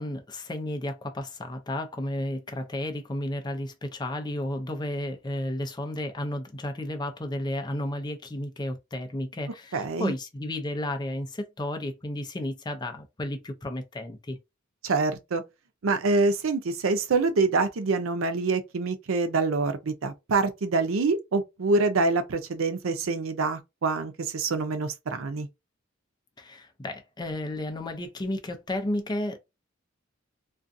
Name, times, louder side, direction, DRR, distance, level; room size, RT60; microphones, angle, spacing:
voice 1, 0.0-14.4 26.4-29.4, left 1 dB, 20° left, 0.5 m, -33 dB
voice 2, 9.7-10.1 14.8-15.4 15.8-25.5, right 3 dB, 85° right, 0.6 m, -26 dB
2.5 x 2.3 x 2.5 m
head